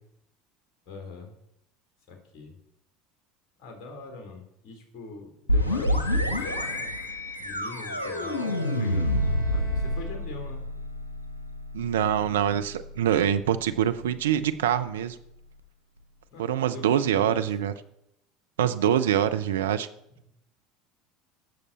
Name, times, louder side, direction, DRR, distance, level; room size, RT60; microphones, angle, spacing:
voice 1, 0.9-1.3 2.1-2.6 3.6-6.9 7.4-10.7 16.3-17.5 19.0-19.2 19.4-19.7, left 4 dB, 45° left, 3 dB, 3.5 m, -43 dB
sound 1, 5.5-15.0, left 1 dB, 90° left, 1.1 m, -29 dB
Bowed string instrument, 8.0-10.7, left 3 dB, 15° left, 3.9 m, -48 dB
voice 2, 11.7-15.2 16.4-17.7 18.6-19.9, right 10 dB, 75° right, 10 dB, 0.6 m, -24 dB
17.0 x 6.7 x 4.2 m, 0.78 s
figure-of-eight pair, 70°, 0 cm